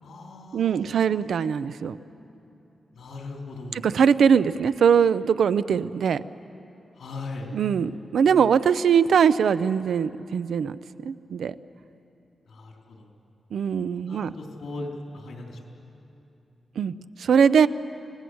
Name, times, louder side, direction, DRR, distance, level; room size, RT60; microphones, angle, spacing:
voice 1, 0.0-1.4 2.9-3.9 6.9-7.5 12.5-13.1 13.9-15.7, left 2 dB, 85° left, 1 dB, 3.9 m, -39 dB
voice 2, 0.5-2.0 3.8-6.2 7.5-10.8 11.0-11.5 13.5-14.3 16.8-16.9 17.2-17.7, right 7 dB, 75° right, 14 dB, 0.6 m, -21 dB
29.0 x 20.0 x 7.9 m, 2.9 s
wide cardioid pair, 180°, 0 cm